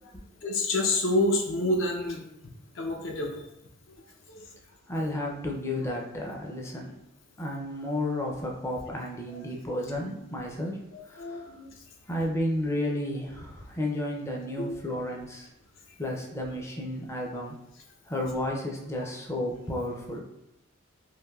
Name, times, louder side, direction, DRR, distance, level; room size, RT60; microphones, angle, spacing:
voice 1, 0.4-2.2 2.8-3.3 4.3-4.4 10.9-11.7 14.6-14.7, left 2 dB, 65° left, 1 dB, 0.5 m, -28 dB
voice 2, 4.9-6.9 7.4-10.8 11.1-11.5 12.1-15.5 16.0-17.6 18.1-20.2, left 1 dB, 15° left, -1 dB, 0.4 m, -32 dB
3.3 x 2.5 x 2.3 m, 0.86 s
head